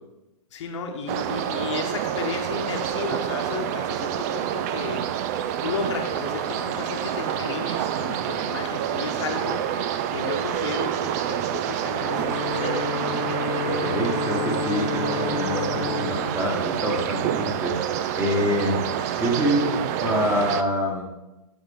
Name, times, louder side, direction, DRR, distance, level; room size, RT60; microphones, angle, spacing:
voice 1, 0.5-5.0 5.6-9.7 10.1-12.9 18.1-18.2, left 5 dB, 50° left, 3 dB, 1.1 m, -33 dB
sound 1, 1.1-20.6, right 10 dB, 25° right, 0.4 m, -28 dB
Bowed string instrument, 11.9-17.5, left 6 dB, 80° left, 1.0 m, -31 dB
voice 2, 13.6-17.8 18.1-21.1, equal, 10° right, 0 dB, 1.5 m, -26 dB
10.0 x 6.1 x 3.6 m, 0.98 s
figure-of-eight pair, 120°, 20 cm